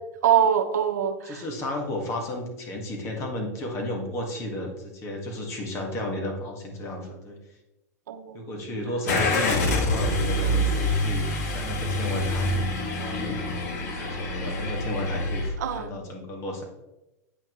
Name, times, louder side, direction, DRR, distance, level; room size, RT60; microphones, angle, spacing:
voice 1, 0.2-1.4 8.1-9.0 13.1-13.3 15.6-15.9, right 8 dB, 90° right, 9 dB, 0.8 m, -25 dB
voice 2, 1.2-7.4 8.3-12.5 12.9-13.4 13.9-16.6, left 1 dB, 30° left, 1 dB, 1.7 m, -33 dB
Car / Engine starting, 9.1-15.5, left 1 dB, 75° left, 1.8 m, -26 dB
8.5 x 5.7 x 3.1 m, 0.98 s
supercardioid pair, 140°, 9 cm